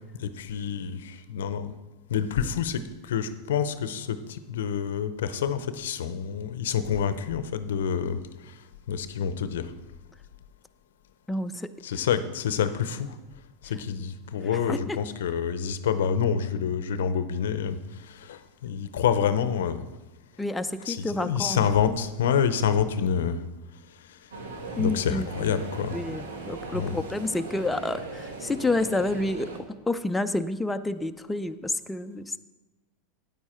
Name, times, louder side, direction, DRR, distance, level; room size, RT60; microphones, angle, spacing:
voice 1, 0.2-1.7 2.1-8.2 8.9-9.7 11.8-13.1 13.6-17.8 18.1-19.8 20.9-23.4 24.8-26.0 26.7-26.9, left 7 dB, 80° left, 12 dB, 0.6 m, -27 dB
voice 2, 11.3-11.7 14.7-15.0 20.4-21.7 24.8-25.6 25.9-29.5 29.9-32.3, left 2 dB, 10° left, 8 dB, 0.5 m, -29 dB
sound 1, 24.3-29.6, right 3 dB, 85° right, 1.4 m, -38 dB
9.4 x 8.8 x 4.4 m, 1.1 s
hypercardioid pair, 100°, 0 cm